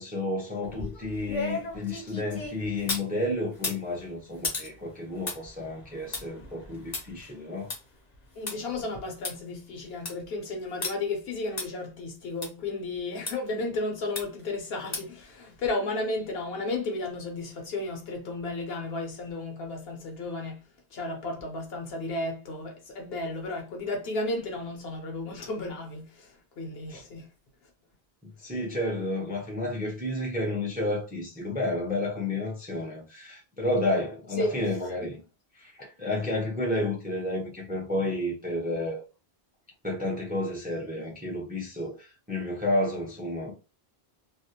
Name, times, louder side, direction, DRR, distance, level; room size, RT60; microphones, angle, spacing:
voice 1, 0.0-7.7 26.9-27.0 28.2-35.2 35.6-39.0 39.8-43.5, left 1 dB, 10° right, 0.5 m, -31 dB
sound 1, 0.6-3.1 3.5-8.6 8.9-9.0 9.2-9.3 9.8-10.2 10.8-10.9 11.6-11.7 12.4-12.5 13.3-13.4 14.2-14.5 14.9-15.2 15.6-15.7, left 3 dB, 45° left, 0.7 m, -36 dB
voice 2, 8.3-27.3 34.4-34.8, left 2 dB, 70° left, 0.9 m, -33 dB
2.4 x 2.1 x 2.7 m
omnidirectional pair, 1.1 m